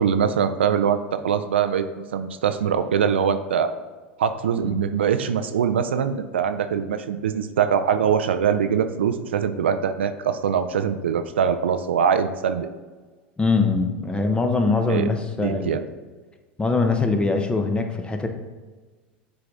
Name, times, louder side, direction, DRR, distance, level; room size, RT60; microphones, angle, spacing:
voice 1, 0.0-1.9 2.1-3.7 4.2-12.7 14.9-15.1 15.4-15.8, right 7 dB, 85° right, 10 dB, 0.4 m, -23 dB
voice 2, 13.4-15.7 16.6-18.3, left 3 dB, 15° left, 5 dB, 0.8 m, -22 dB
6.7 x 4.0 x 3.6 m, 1.4 s
hypercardioid pair, 85°, 6 cm